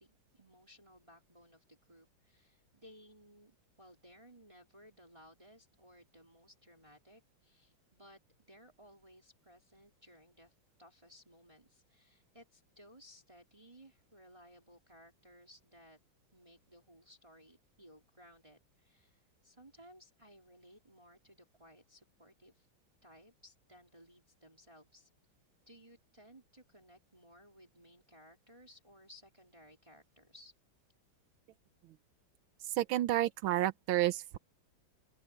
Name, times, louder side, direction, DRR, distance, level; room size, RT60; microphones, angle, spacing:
voice 1, 0.0-10.5 10.8-16.0 16.3-22.7 23.0-25.1 25.7-30.5, equal, 15° right, 3.8 m, -60 dB
voice 2, 32.7-34.4, right 14 dB, 85° right, 1.6 m, -30 dB
open air
omnidirectional pair, 2.2 m